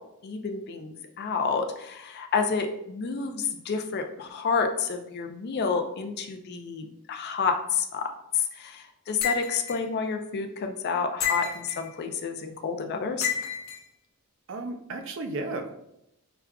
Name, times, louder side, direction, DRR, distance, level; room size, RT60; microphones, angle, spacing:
voice 1, 0.2-13.3, left 5 dB, 50° left, 5 dB, 0.4 m, -29 dB
sound 1, 9.2-9.8 11.2-11.9 13.2-13.8, left 7 dB, 65° left, 0.8 m, -30 dB
voice 2, 14.5-15.7, right 2 dB, 60° right, 5 dB, 0.4 m, -34 dB
5.8 x 2.3 x 2.3 m, 0.81 s
head